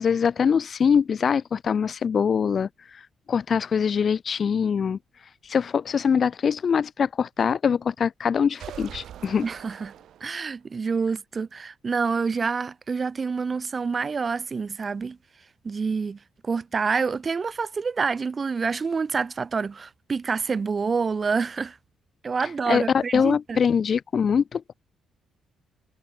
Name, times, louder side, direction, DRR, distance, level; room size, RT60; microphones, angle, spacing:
voice 1, 0.0-5.0 5.4-9.5 22.7-24.7, left 6 dB, 35° left, 0.6 m, -23 dB
sound 1, 8.5-10.6, right 10 dB, 60° right, 2.1 m, -42 dB
voice 2, 9.4-9.9 10.2-15.2 15.6-21.8 22.2-23.6, right 5 dB, 25° right, 0.5 m, -27 dB
cardioid pair, 165°, 0 cm